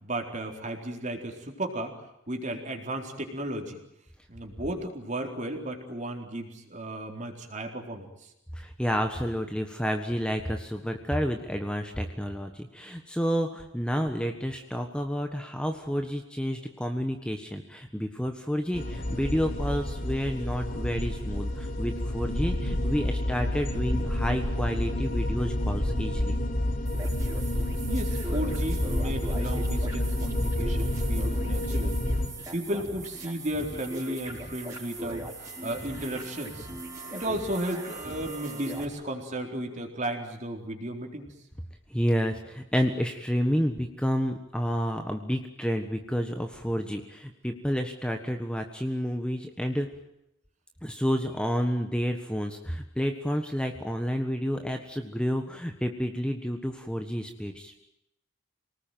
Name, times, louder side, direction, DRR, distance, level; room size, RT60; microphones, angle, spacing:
voice 1, 0.0-3.8 4.3-8.3 27.8-32.0 32.5-36.7 37.1-41.3, right 1 dB, 35° right, 3 dB, 4.2 m, -34 dB
voice 2, 8.5-26.4 41.9-49.9 50.8-57.7, equal, 5° left, 5 dB, 1.4 m, -30 dB
sound 1, 18.7-32.3, left 1 dB, 45° left, 3.4 m, -29 dB
sound 2, 26.9-38.8, right 2 dB, 15° right, 5.3 m, -40 dB
28.0 x 19.5 x 9.3 m, 0.84 s
head